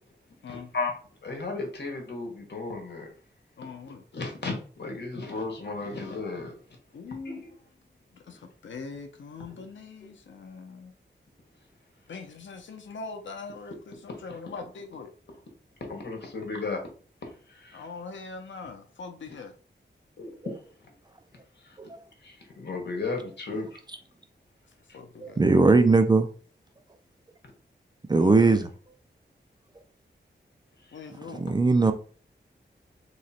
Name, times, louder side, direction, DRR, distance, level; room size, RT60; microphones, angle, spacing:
voice 1, 0.5-1.0 1.2-3.1 3.8-6.5 7.1-7.5 15.8-16.8 17.2-17.8 20.2-20.6 21.6-21.8 22.2-23.8 24.9-25.0, left 3 dB, 65° left, 1.2 m, -35 dB
voice 2, 3.6-4.0 6.9-7.4 8.1-10.9 12.1-15.1 17.7-19.5 24.9-25.4 28.1-28.6 30.9-31.5, left 4 dB, 85° left, 0.6 m, -42 dB
voice 3, 25.2-26.3 28.1-28.7 31.3-31.9, right 3 dB, 25° right, 0.4 m, -19 dB
3.1 x 2.9 x 4.2 m
wide cardioid pair, 135°, 19 cm